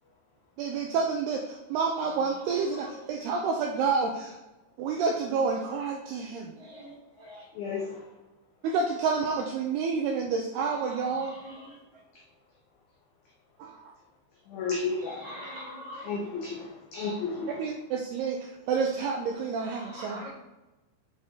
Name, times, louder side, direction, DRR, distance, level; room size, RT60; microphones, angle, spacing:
voice 1, 0.6-4.4 4.8-6.5 8.6-11.4 13.6-13.8 17.5-20.2, right 5 dB, 90° right, 1 dB, 2.3 m, -29 dB
voice 2, 2.0-2.9 6.5-7.5 10.7-11.8 15.0-16.2 19.6-20.3, equal, 25° left, -8 dB, 0.7 m, -44 dB
voice 3, 7.6-8.0 14.5-15.4 16.0-17.6, left 4 dB, 80° left, -1 dB, 2.1 m, -32 dB
8.3 x 5.2 x 3.9 m, 1.0 s
omnidirectional pair, 5.3 m